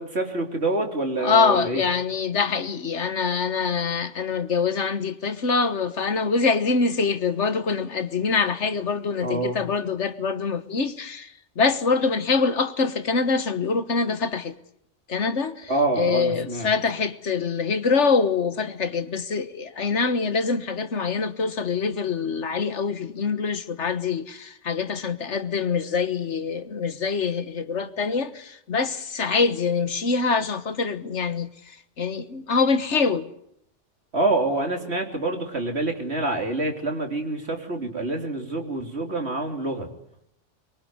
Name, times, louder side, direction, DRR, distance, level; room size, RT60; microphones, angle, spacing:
voice 1, 0.0-1.8 9.2-9.6 15.7-16.7 34.1-39.9, right 2 dB, 60° right, 3.6 m, -26 dB
voice 2, 1.2-14.5 15.1-15.7 16.0-33.3, left 5 dB, 70° left, 1.7 m, -24 dB
23.0 x 23.0 x 9.6 m
omnidirectional pair, 1.2 m